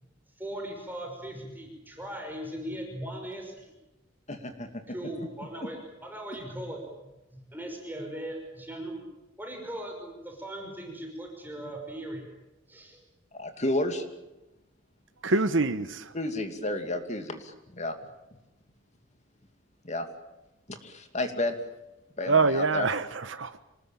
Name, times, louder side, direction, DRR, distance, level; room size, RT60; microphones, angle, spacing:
voice 1, 0.4-3.7 4.9-6.8 7.3-9.1 9.4-12.3 12.7-13.0, right 1 dB, 10° right, 1 dB, 5.5 m, -39 dB
voice 2, 4.3-4.8 13.3-14.0 16.1-17.9 19.8-20.1 20.7-21.5 22.2-22.9, left 1 dB, 35° left, 7 dB, 2.6 m, -31 dB
voice 3, 15.2-16.1 22.3-23.6, right 3 dB, 75° right, 10 dB, 1.2 m, -25 dB
26.5 x 20.0 x 9.0 m, 0.99 s
head